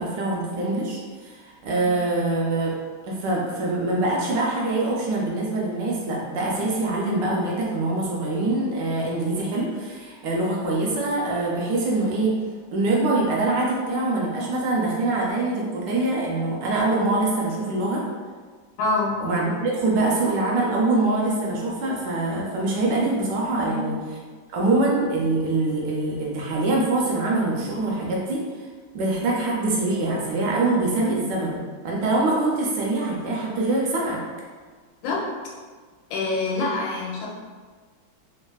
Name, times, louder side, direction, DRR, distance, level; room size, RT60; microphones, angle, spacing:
voice 1, 0.0-2.7 3.1-12.3 12.7-18.0 19.2-24.0 24.5-28.4 28.9-34.2, right 2 dB, 75° right, -3 dB, 1.1 m, -24 dB
voice 2, 18.8-19.2 23.6-23.8 35.0-35.3 36.1-37.3, left 3 dB, 90° left, -3 dB, 1.4 m, -25 dB
3.3 x 2.3 x 2.2 m, 1.5 s
omnidirectional pair, 2.1 m